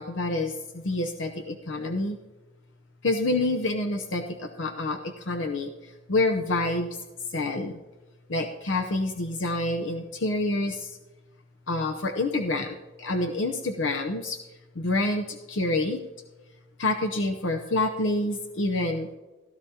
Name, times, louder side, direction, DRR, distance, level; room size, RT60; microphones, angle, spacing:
voice 1, 0.0-2.2 3.0-7.0 7.3-7.8 8.3-11.0 11.7-14.4 14.7-16.0 16.8-19.2, left 2 dB, 75° left, 4 dB, 0.7 m, -27 dB
16.5 x 12.5 x 2.8 m, 1.1 s
head